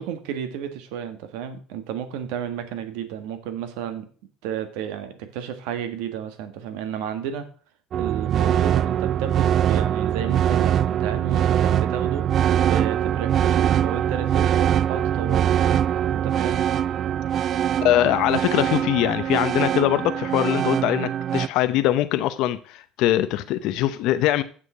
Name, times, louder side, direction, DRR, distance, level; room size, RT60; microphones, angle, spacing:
voice 1, 0.0-4.1 4.4-7.5 8.0-12.3 12.6-15.5 16.1-16.6, right 9 dB, 85° right, 1.5 m, -32 dB
sound 1, 7.9-21.5, right 10 dB, 50° right, 0.3 m, -22 dB
voice 2, 17.8-24.4, left 13 dB, 70° left, 0.7 m, -22 dB
7.5 x 6.5 x 6.1 m
supercardioid pair, 105°, 0 cm